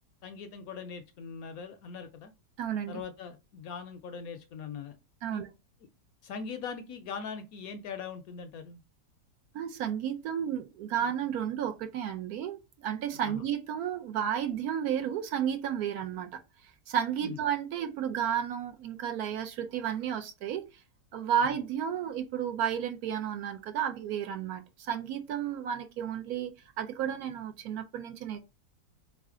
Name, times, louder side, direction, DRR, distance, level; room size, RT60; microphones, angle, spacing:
voice 1, 0.2-2.3 2.9-4.9 5.3-5.4 6.2-8.8 13.2-13.4 17.2-17.4 21.4-21.5, left 6 dB, 70° left, 0.9 m, -41 dB
voice 2, 2.6-3.0 5.2-5.5 9.5-20.8 21.1-28.4, right 9 dB, 70° right, 1.0 m, -32 dB
3.6 x 3.2 x 3.6 m
omnidirectional pair, 1.8 m